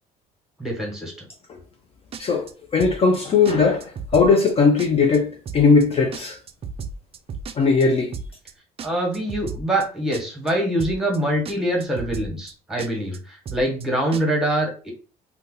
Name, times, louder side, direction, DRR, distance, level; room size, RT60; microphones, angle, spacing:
voice 1, 0.6-1.1 8.8-14.9, right 1 dB, 5° right, 1.2 m, -24 dB
sound 1, 2.1-2.5 2.8-3.2 3.4-3.5 3.8-4.5 4.8-5.2 5.4-5.8 6.1-7.8 8.1-8.5 8.8-9.8 10.1-10.5 10.8-11.2 11.4-11.5 11.8-12.5 12.8-13.2 13.4-13.8 14.1-14.2, right 5 dB, 35° right, 0.3 m, -34 dB
voice 2, 2.2-6.4 7.6-8.1, left 4 dB, 35° left, 0.4 m, -19 dB
2.6 x 2.2 x 3.7 m
cardioid pair, 110°, 17 cm